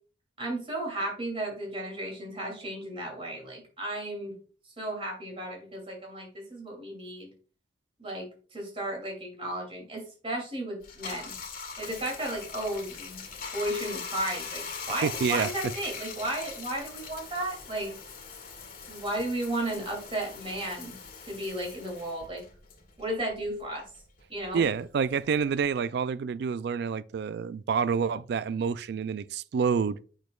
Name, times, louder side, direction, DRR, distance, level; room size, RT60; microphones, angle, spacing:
voice 1, 0.4-4.3 4.8-7.3 8.0-11.3 11.8-17.9 18.9-21.0 21.3-22.4 23.0-23.8 24.3-24.6, right 1 dB, 30° right, 2.7 m, -34 dB
Bathtub (filling or washing), 10.8-23.6 24.0-25.8, left 5 dB, 50° left, 1.7 m, -41 dB
voice 2, 15.0-15.5 24.5-30.0, right 6 dB, 60° right, 0.3 m, -28 dB
8.3 x 6.4 x 2.3 m
head